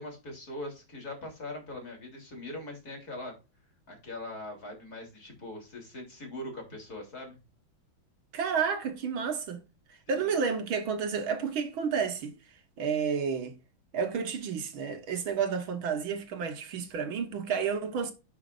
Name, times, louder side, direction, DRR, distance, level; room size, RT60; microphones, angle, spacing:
voice 1, 0.0-3.4 3.9-7.4 10.1-10.3, left 1 dB, 45° left, 3.9 m, -41 dB
voice 2, 8.3-9.7 10.1-12.4 12.8-13.6 13.9-18.1, right 6 dB, 80° right, 2.2 m, -31 dB
11.5 x 6.6 x 2.6 m
omnidirectional pair, 2.2 m